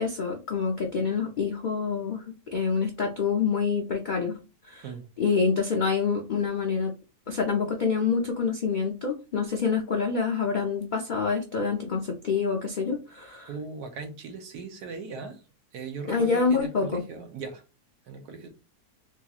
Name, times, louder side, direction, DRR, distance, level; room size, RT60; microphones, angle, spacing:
voice 1, 0.0-4.4 4.7-4.8 5.2-6.9 7.3-13.5 16.1-17.0, left 5 dB, 85° left, 0.4 m, -27 dB
voice 2, 13.5-15.4 15.7-17.6 18.1-18.5, right 4 dB, 85° right, 1.4 m, -38 dB
3.8 x 2.8 x 2.4 m
omnidirectional pair, 1.6 m